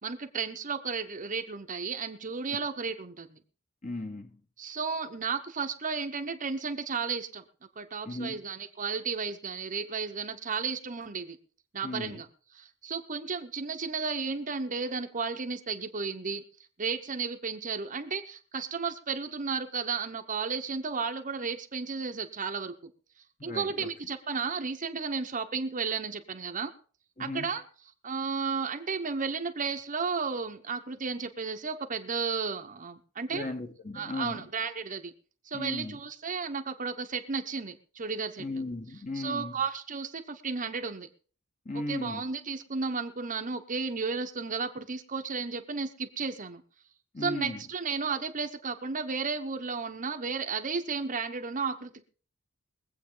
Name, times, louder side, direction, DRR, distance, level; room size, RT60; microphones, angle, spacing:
voice 1, 0.0-3.4 4.6-7.4 7.8-11.4 11.7-12.3 12.5-16.4 16.8-22.9 23.4-26.7 27.2-27.6 28.0-33.4 33.9-35.1 35.4-38.4 39.1-41.1 41.7-46.6 47.2-52.0, right 5 dB, 35° right, 1.0 m, -33 dB
voice 2, 3.8-4.4 8.0-8.4 11.8-12.2 23.4-23.9 27.2-27.5 33.3-34.5 35.5-36.0 38.4-39.6 41.6-42.2 47.1-47.6, left 2 dB, 35° left, 1.4 m, -36 dB
22.5 x 8.1 x 3.9 m
head